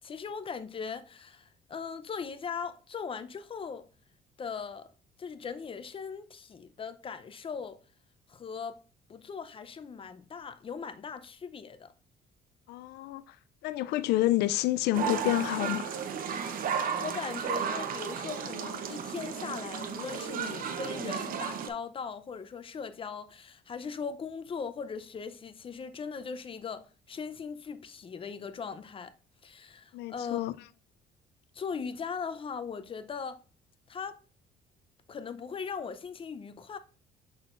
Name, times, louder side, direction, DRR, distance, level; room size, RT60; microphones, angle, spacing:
voice 1, 0.0-3.9 4.4-4.9 5.2-7.8 8.3-8.8 9.1-11.9 16.6-16.7 17.0-29.1 29.4-30.5 31.5-33.4 33.9-34.2 35.1-36.8, left 6 dB, 30° left, 0.6 m, -39 dB
voice 2, 12.7-13.4 13.6-15.9 29.9-30.5, left 15 dB, 75° left, 0.4 m, -29 dB
sound 1, 14.9-21.7, right 7 dB, 55° right, 0.9 m, -34 dB
6.2 x 6.2 x 2.5 m
cardioid pair, 110°, 17 cm